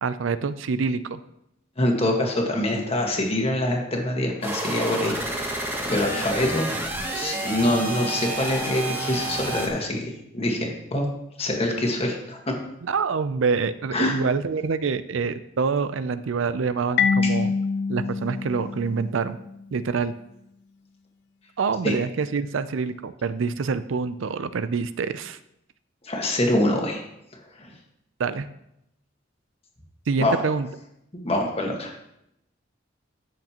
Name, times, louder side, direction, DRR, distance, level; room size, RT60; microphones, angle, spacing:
voice 1, 0.0-1.2 12.8-17.5 17.9-19.4 19.7-20.2 21.6-25.4 28.2-28.5 30.1-30.7, right 5 dB, 80° right, 14 dB, 0.5 m, -26 dB
voice 2, 1.8-5.5 5.9-6.7 7.1-11.0 11.4-12.5 13.9-14.2 17.2-17.3 21.8-21.9 26.0-27.0 27.6-27.7 30.2-30.4 31.2-31.9, left 1 dB, 30° left, 1 dB, 1.5 m, -25 dB
sound 1, 4.4-9.7, right 2 dB, 10° right, 1.1 m, -30 dB
Marimba xylophone, 17.0-19.6, left 5 dB, 60° left, 0.4 m, -25 dB
13.5 x 6.5 x 2.9 m, 0.82 s
head